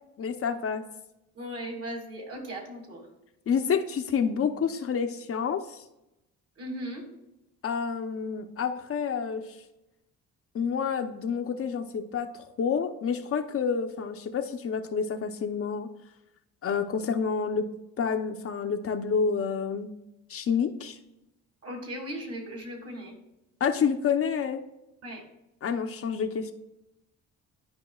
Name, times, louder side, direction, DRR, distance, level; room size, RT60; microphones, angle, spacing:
voice 1, 0.2-0.9 3.5-5.8 7.6-9.6 10.5-15.9 16.6-17.7 18.0-19.9 20.3-21.0 23.6-24.6 25.6-26.5, left 6 dB, 50° left, 6 dB, 0.7 m, -28 dB
voice 2, 1.3-3.1 6.6-7.1 21.6-23.2 25.0-25.2, equal, 50° right, 2 dB, 2.5 m, -37 dB
11.5 x 5.2 x 2.3 m, 0.90 s
cardioid pair, 90°, 30 cm